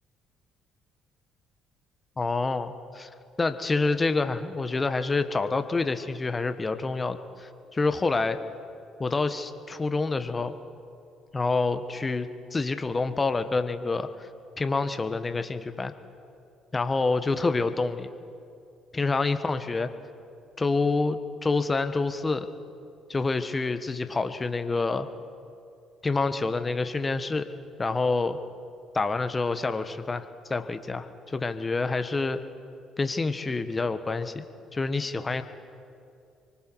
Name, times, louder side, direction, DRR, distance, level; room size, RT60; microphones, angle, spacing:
voice 1, 2.2-3.1 3.4-8.4 9.0-10.5 11.3-14.3 14.6-15.9 16.7-18.1 18.9-19.9 20.6-22.5 23.1-25.1 26.0-27.5 27.8-28.4 28.9-32.4 33.0-34.4 34.7-35.4, left 3 dB, 30° left, 10 dB, 1.3 m, -27 dB
25.5 x 24.0 x 4.7 m, 2.4 s
hypercardioid pair, 50°, 0 cm